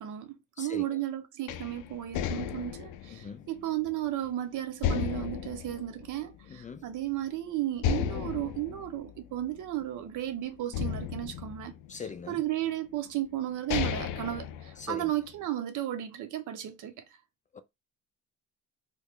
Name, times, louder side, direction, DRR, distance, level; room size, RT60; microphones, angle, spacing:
voice 1, 0.0-11.7 12.3-17.0, right 13 dB, 75° right, 0.8 m, -34 dB
sound 1, 1.5-4.3 4.8-6.8 7.1-7.2 7.8-10.2 10.7-12.3 13.1-13.2 13.5-15.3, left 8 dB, 85° left, 0.5 m, -34 dB
voice 2, 3.1-3.5 6.5-6.9 11.9-12.4 14.8-15.1 17.5-17.6, left 5 dB, 25° left, 0.3 m, -41 dB
3.0 x 2.3 x 3.5 m
cardioid pair, 105°, 31 cm